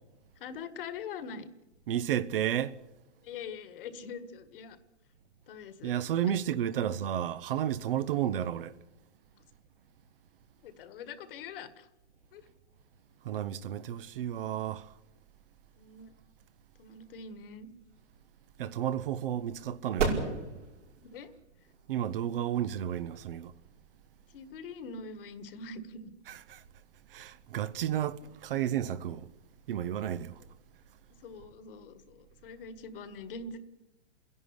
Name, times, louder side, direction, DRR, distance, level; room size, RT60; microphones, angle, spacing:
voice 1, 0.4-1.5 3.2-4.8 5.5-5.9 10.6-11.9 12.3-12.5 15.8-16.1 16.8-17.7 21.0-21.3 24.3-26.1 28.2-28.3 31.2-33.6, left 5 dB, 50° left, 1.8 m, -43 dB
voice 2, 1.9-2.8 5.8-8.7 13.2-14.9 18.6-20.1 21.9-23.5 26.3-26.6 27.1-29.3 29.7-30.4, right 10 dB, 50° right, 0.9 m, -32 dB
sound 1, 17.5-24.7, right 5 dB, 90° right, 5.4 m, -38 dB
29.5 x 11.0 x 9.7 m
hypercardioid pair, 160°, 35 cm